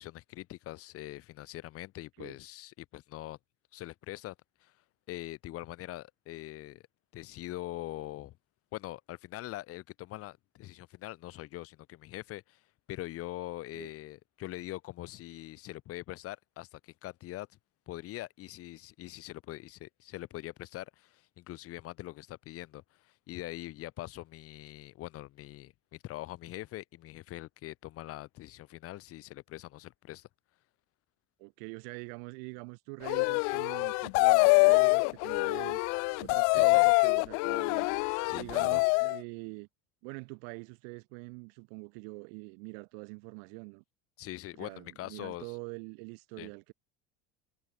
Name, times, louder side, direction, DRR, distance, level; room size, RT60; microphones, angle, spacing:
voice 1, 0.0-3.4 3.7-4.7 5.1-6.8 7.1-8.4 8.7-12.6 12.9-17.5 17.9-30.3 36.5-36.9 38.2-38.8 44.2-45.6 46.4-46.5, left 16 dB, 50° left, 5.8 m, -43 dB
voice 2, 31.4-35.8 36.2-37.9 38.3-39.7 40.0-43.8 44.5-46.7, right 39 dB, 80° right, 7.2 m, -45 dB
sound 1, 33.0-39.2, left 34 dB, 65° left, 0.5 m, -25 dB
cardioid pair, 160°, 30 cm